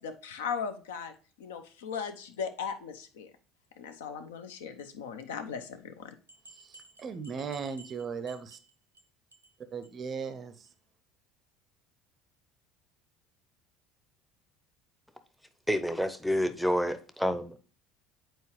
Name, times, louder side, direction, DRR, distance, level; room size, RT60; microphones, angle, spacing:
voice 1, 0.0-3.3 3.8-6.2, left 6 dB, 65° left, 0.7 m, -38 dB
sound 1, 6.3-9.0 9.3-9.6 9.8-9.9 10.2-10.3 10.7-10.8, right 3 dB, 85° right, 0.7 m, -55 dB
voice 2, 6.5-8.6 9.7-10.7, right 6 dB, 35° right, 0.6 m, -37 dB
voice 3, 15.7-17.6, equal, ahead, 0.7 m, -28 dB
8.2 x 4.5 x 3.1 m
figure-of-eight pair, 65°, 0 cm